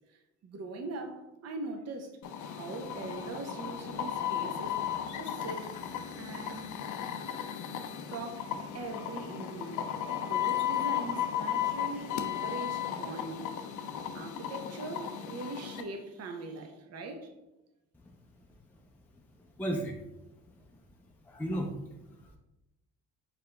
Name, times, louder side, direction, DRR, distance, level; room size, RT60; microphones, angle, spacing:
voice 1, 0.4-2.1 2.4-4.8 5.2-5.7 6.2-6.7 8.1-10.0 10.2-13.5 14.1-17.3, right 3 dB, 55° right, 5 dB, 0.7 m, -41 dB
sound 1, 2.2-15.8, left 10 dB, 80° left, 0.5 m, -35 dB
voice 2, 19.1-20.0 20.6-20.7 21.2-22.4, right 1 dB, 5° left, 0 dB, 0.4 m, -36 dB
4.9 x 3.9 x 2.2 m, 0.96 s
cardioid pair, 90°, 30 cm